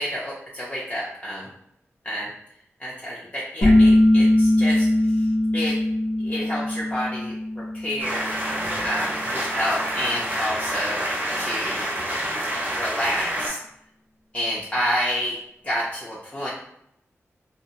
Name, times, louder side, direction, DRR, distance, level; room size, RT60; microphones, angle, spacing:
voice 1, 0.0-1.5 2.0-2.3 2.8-5.3 5.5-5.8 6.2-7.3 7.7-8.4 8.8-11.1 11.4-11.8 12.7-13.6 14.3-15.4 15.6-16.5, equal, 25° left, -6 dB, 0.5 m, -29 dB
sound 1, 3.6-9.0, left 1 dB, 85° left, 0.7 m, -20 dB
sound 2, 8.0-13.5, right 1 dB, 35° right, 0.7 m, -27 dB
2.6 x 2.0 x 2.7 m, 0.77 s
wide cardioid pair, 90°, 5 cm